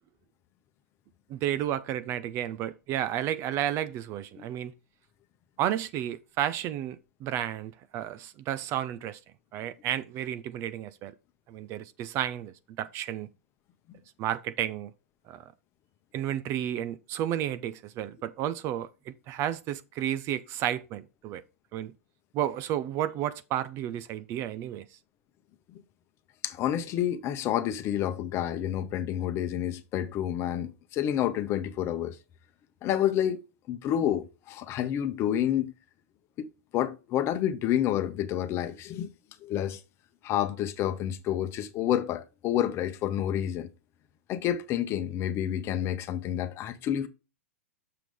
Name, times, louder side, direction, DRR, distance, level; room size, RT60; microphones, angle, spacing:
voice 1, 1.3-4.7 5.6-9.2 9.5-11.1 11.5-13.3 14.2-14.9 15.3-15.5 16.1-21.4 21.7-21.9 22.3-24.8, right 11 dB, 35° right, 0.6 m, -32 dB
voice 2, 26.4-32.2 32.8-33.4 33.7-35.7 36.4-36.5 36.7-39.1 39.4-39.8 40.2-43.7 44.3-47.1, left 11 dB, 35° left, 0.9 m, -29 dB
6.7 x 6.0 x 3.5 m
hypercardioid pair, 115°, 8 cm